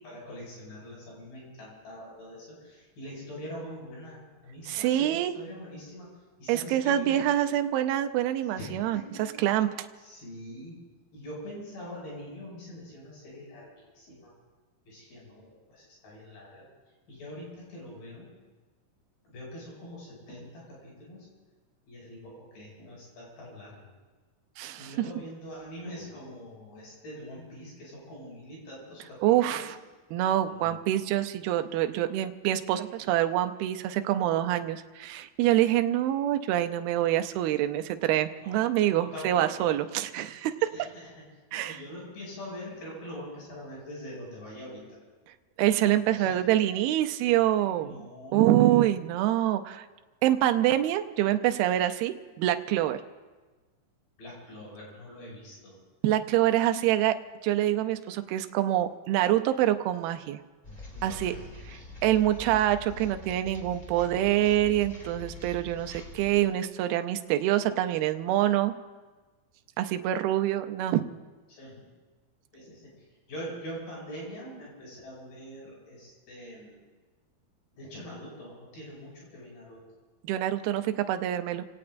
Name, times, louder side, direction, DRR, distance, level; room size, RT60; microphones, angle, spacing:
voice 1, 0.0-6.1 6.4-7.3 8.6-9.4 10.0-10.8 11.1-14.3 14.9-16.7 17.1-18.3 19.3-21.3 21.9-23.9 24.8-29.7 30.5-30.8 38.4-38.6 38.9-39.7 40.6-41.2 41.5-45.0 46.1-46.4 47.8-48.8 54.2-55.8 61.0-61.8 71.5-71.9 72.5-76.8 77.8-79.8, equal, 80° left, -4 dB, 8.5 m, -44 dB
voice 2, 4.7-5.3 6.5-9.0 9.4-9.7 24.6-24.9 29.2-29.7 30.1-40.7 41.5-41.8 45.6-48.0 48.3-49.9 50.2-53.0 56.0-57.2 57.4-60.4 61.0-61.3 62.0-68.7 69.8-71.0 80.2-81.6, right 13 dB, 80° right, 8 dB, 2.5 m, -26 dB
sound 1, 60.6-66.4, left 3 dB, 15° left, 2.6 m, -44 dB
29.5 x 17.5 x 2.6 m, 1.3 s
omnidirectional pair, 4.4 m